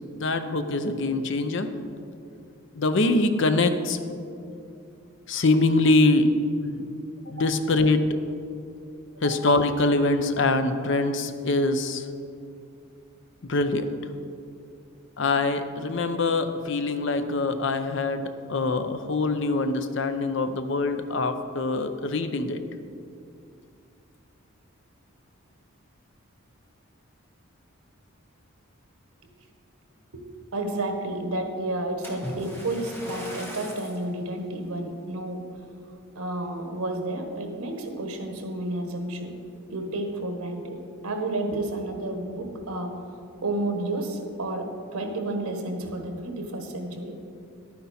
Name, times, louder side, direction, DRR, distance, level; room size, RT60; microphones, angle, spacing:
voice 1, 0.1-1.7 2.7-4.0 5.3-6.3 6.6-6.8 7.3-8.0 9.2-12.1 13.5-13.9 15.2-22.6, left 2 dB, 55° left, 9 dB, 0.6 m, -24 dB
voice 2, 30.5-35.4 36.1-39.3 39.7-42.9 43.4-47.1, right 2 dB, 85° right, 5 dB, 1.3 m, -31 dB
Splash splatter, 32.0-34.1 34.7-35.0 35.6-35.7, equal, 10° left, 1.3 m, -38 dB
11.0 x 9.5 x 4.3 m, 2.6 s
head